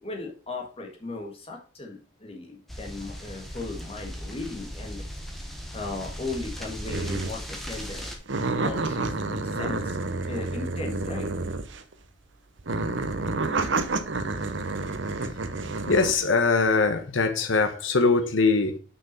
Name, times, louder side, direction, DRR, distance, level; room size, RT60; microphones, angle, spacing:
voice 1, 0.0-5.0 5.7-8.1 8.6-10.0 10.3-11.3, left 3 dB, 30° left, 1.5 m, -37 dB
sound 1, 2.7-8.2, equal, ahead, 1.2 m, -38 dB
sound 2, 6.9-7.4 7.7-7.9 8.3-11.9 12.6-16.2, right 3 dB, 75° right, 0.9 m, -29 dB
voice 2, 14.8-15.5 15.9-18.8, left 4 dB, 80° left, 1.0 m, -23 dB
6.0 x 5.9 x 5.4 m
head